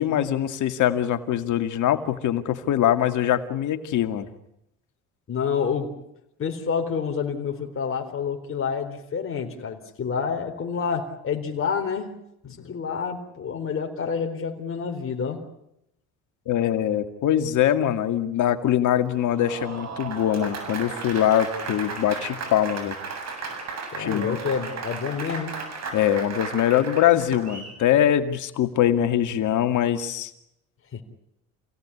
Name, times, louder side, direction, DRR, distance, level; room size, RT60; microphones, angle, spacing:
voice 1, 0.0-4.3 16.5-23.0 24.0-24.4 25.9-30.3, left 11 dB, 60° left, 9 dB, 2.3 m, -23 dB
voice 2, 5.3-5.9 6.4-12.1 12.4-15.4 23.9-25.6 30.9-31.0, left 6 dB, 40° left, 4 dB, 3.9 m, -28 dB
Applause, 19.0-27.8, right 4 dB, 50° right, 7.6 m, -35 dB
27.5 x 17.5 x 9.9 m, 0.80 s
supercardioid pair, 90°, 33 cm